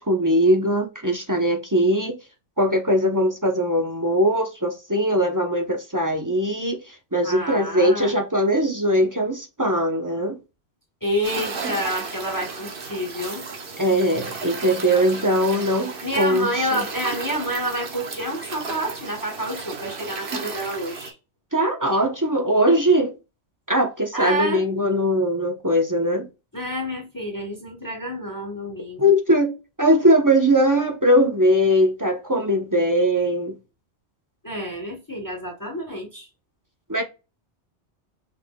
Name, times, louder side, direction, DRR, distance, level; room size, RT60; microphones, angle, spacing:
voice 1, 0.0-2.2 2.6-10.4 13.8-16.8 21.5-23.1 23.7-26.3 29.0-33.6 36.9-37.0, equal, 20° right, 0.7 m, -20 dB
voice 2, 7.2-8.1 11.0-13.5 16.0-21.1 24.1-24.6 26.5-29.0 34.4-36.3, equal, 20° left, 1.0 m, -28 dB
sound 1, 11.2-21.1, right 4 dB, 55° right, 1.1 m, -34 dB
5.9 x 3.4 x 2.2 m
omnidirectional pair, 1.1 m